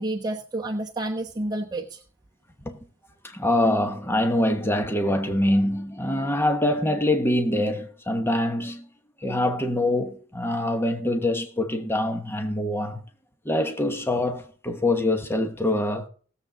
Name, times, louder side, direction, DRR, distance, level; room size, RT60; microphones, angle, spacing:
voice 1, 0.0-2.0, right 1 dB, 20° right, 1.0 m, -30 dB
voice 2, 3.2-8.9 9.2-13.0 13.4-16.1, left 1 dB, 10° left, 1.1 m, -24 dB
19.0 x 7.4 x 3.9 m
head